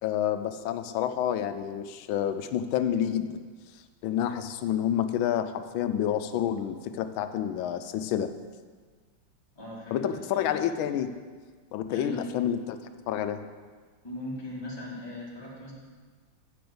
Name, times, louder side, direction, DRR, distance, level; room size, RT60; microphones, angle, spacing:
voice 1, 0.0-3.4 4.0-8.3 9.9-11.1 11.7-12.8 13.1-13.5, left 10 dB, 85° left, 10 dB, 1.4 m, -29 dB
voice 2, 9.6-10.6 11.9-12.3 14.0-15.7, left 1 dB, 15° left, -6 dB, 1.9 m, -39 dB
7.8 x 5.8 x 6.8 m, 1.5 s
omnidirectional pair, 2.2 m